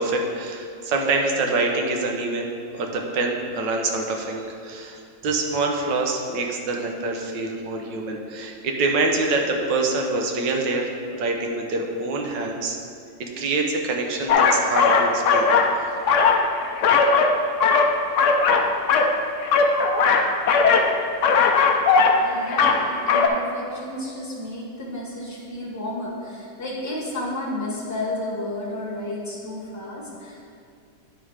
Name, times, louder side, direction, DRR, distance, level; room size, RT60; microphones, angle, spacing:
voice 1, 0.0-12.8 13.2-15.5, right 3 dB, 75° right, 2 dB, 1.5 m, -25 dB
sound 1, 14.3-15.7 16.0-17.3 17.6-19.1 19.4-20.9 21.2-22.2 22.5-22.8 23.1-23.3, left 5 dB, 80° left, 0.6 m, -18 dB
voice 2, 22.2-30.4, left 1 dB, 10° left, -5 dB, 1.3 m, -32 dB
9.8 x 4.0 x 4.8 m, 2.4 s
omnidirectional pair, 2.0 m